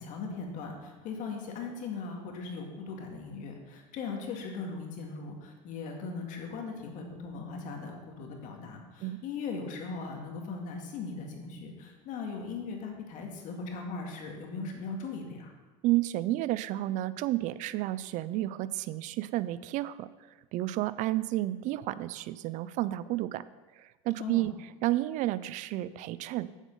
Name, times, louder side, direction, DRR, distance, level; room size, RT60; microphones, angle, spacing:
voice 1, 0.0-15.5 24.2-24.5, left 4 dB, 50° left, 2 dB, 2.1 m, -39 dB
voice 2, 15.8-20.1 20.5-23.4 23.8-24.5 24.8-26.5, right 16 dB, 50° right, 16 dB, 0.5 m, -31 dB
8.3 x 7.3 x 5.4 m, 1.2 s
supercardioid pair, 110°, 16 cm